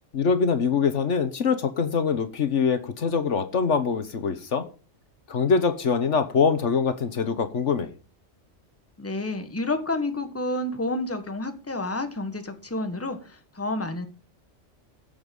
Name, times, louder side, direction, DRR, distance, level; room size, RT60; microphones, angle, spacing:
voice 1, 0.1-4.6 5.3-7.9, left 5 dB, 70° left, 11 dB, 1.5 m, -24 dB
voice 2, 9.0-14.1, left 2 dB, 10° left, 8 dB, 1.4 m, -30 dB
16.5 x 7.2 x 5.4 m, 0.35 s
omnidirectional pair, 1.3 m